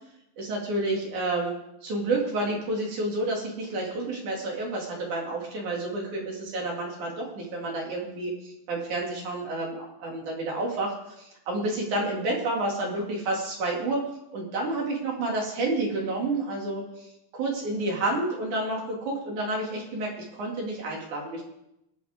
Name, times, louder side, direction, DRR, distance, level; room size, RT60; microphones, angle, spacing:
voice 1, 0.4-1.6 1.8-14.0 14.3-17.1 17.3-21.4, right 2 dB, 50° right, -1 dB, 3.6 m, -30 dB
22.5 x 8.3 x 3.7 m, 0.85 s
omnidirectional pair, 4.9 m